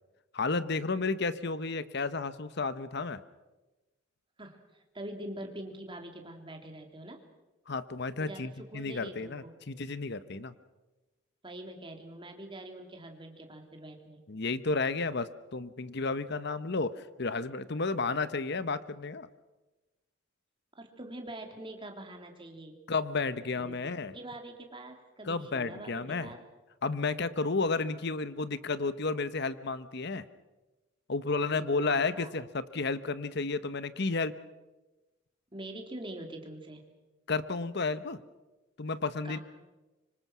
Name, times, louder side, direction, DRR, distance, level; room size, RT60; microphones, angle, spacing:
voice 1, 0.3-3.2 7.7-10.5 14.3-19.3 22.9-24.1 25.2-26.3 26.8-30.3 31.1-34.3 37.3-38.2 38.8-39.4, left 3 dB, 55° left, 14 dB, 1.0 m, -32 dB
voice 2, 4.4-7.2 8.2-9.6 11.4-14.2 20.8-22.8 23.6-26.4 31.4-32.3 35.5-36.8 39.2-39.4, right 1 dB, 25° right, 3 dB, 3.1 m, -44 dB
25.5 x 25.0 x 6.2 m, 1.1 s
head